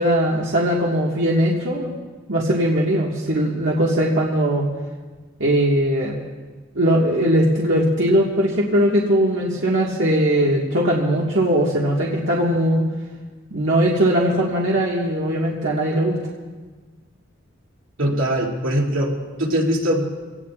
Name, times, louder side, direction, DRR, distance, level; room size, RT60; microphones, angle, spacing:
voice 1, 0.0-2.0 2.3-4.7 5.4-6.2 6.7-12.8 13.5-16.2, right 1 dB, 65° right, -4 dB, 1.7 m, -20 dB
voice 2, 18.0-19.1 19.4-20.0, equal, 85° right, -2 dB, 2.6 m, -21 dB
24.5 x 18.0 x 2.4 m, 1.4 s
head